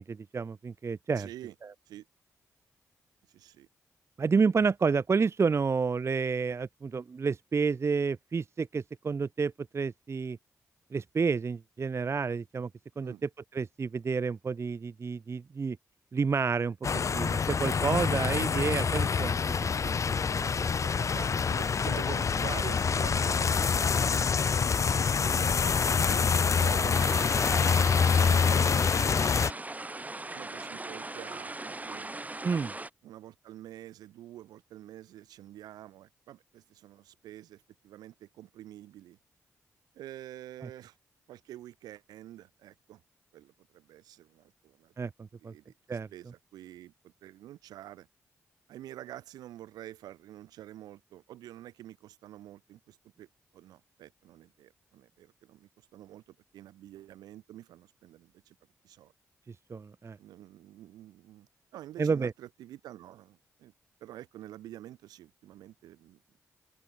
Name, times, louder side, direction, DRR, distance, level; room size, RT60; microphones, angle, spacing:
voice 1, 0.0-1.3 1.6-1.7 4.2-10.4 10.9-12.7 13.0-15.8 16.1-16.8 17.1-19.4 19.8-20.0 20.3-20.7 32.4-32.7 40.6-40.7 45.0-45.5 45.9-46.1 59.7-60.2 62.0-62.3, right 5 dB, 45° right, 0.6 m, -30 dB
voice 2, 1.2-1.5 1.9-2.1 3.3-3.7 13.0-13.2 20.8-24.9 26.1-27.3 28.2-28.9 30.3-32.2 33.0-39.2 39.9-41.0 41.3-43.0 43.3-44.9 45.4-48.1 48.7-53.3 53.5-58.5 58.8-59.1 60.2-63.7 64.0-66.2, right 13 dB, 85° right, 3.1 m, -47 dB
sound 1, 16.8-29.5, left 5 dB, 50° left, 0.9 m, -26 dB
sound 2, 26.9-32.9, right 2 dB, 25° right, 2.5 m, -39 dB
open air
supercardioid pair, 45°, 7 cm